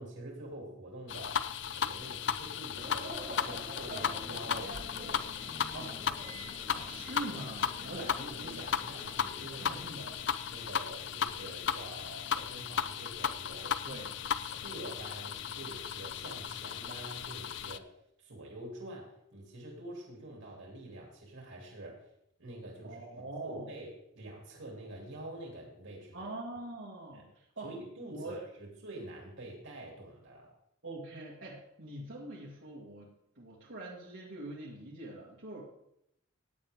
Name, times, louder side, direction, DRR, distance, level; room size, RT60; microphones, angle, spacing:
voice 1, 0.0-4.8 7.9-10.1 10.5-13.8 14.4-22.1 22.4-23.0 23.4-26.3 27.1-27.2 27.6-28.5 28.8-30.5, right 1 dB, 85° right, -2 dB, 3.0 m, -46 dB
sound 1, 1.1-17.8, left 8 dB, 60° left, 0.5 m, -36 dB
sound 2, 2.8-11.1, right 1 dB, 50° right, 3.6 m, -47 dB
voice 2, 6.7-8.0 9.6-10.0 13.8-14.1 22.8-23.7 26.1-27.7 28.1-28.4 30.8-35.6, right 2 dB, 65° right, -4 dB, 2.2 m, -43 dB
16.0 x 9.0 x 3.6 m, 0.78 s
head